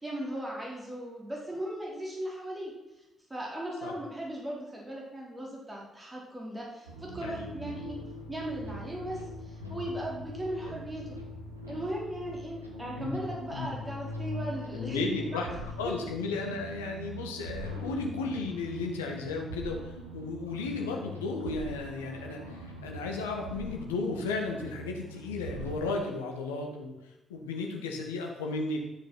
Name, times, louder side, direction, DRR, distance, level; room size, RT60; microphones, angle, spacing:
voice 1, 0.0-2.7 3.3-8.0 8.3-11.1 11.7-15.0 15.3-15.4 15.8-15.9 17.8-17.9, right 1 dB, 20° right, -3 dB, 4.8 m, -37 dB
sound 1, 6.9-25.8, equal, 85° right, 1.4 m, -42 dB
voice 2, 7.2-7.5 10.6-10.7 13.0-13.2 13.5-13.7 14.7-15.5 15.8-26.9 27.3-28.8, left 3 dB, 75° left, 2 dB, 1.7 m, -34 dB
13.5 x 7.2 x 5.8 m, 1.0 s
figure-of-eight pair, 40°, 0 cm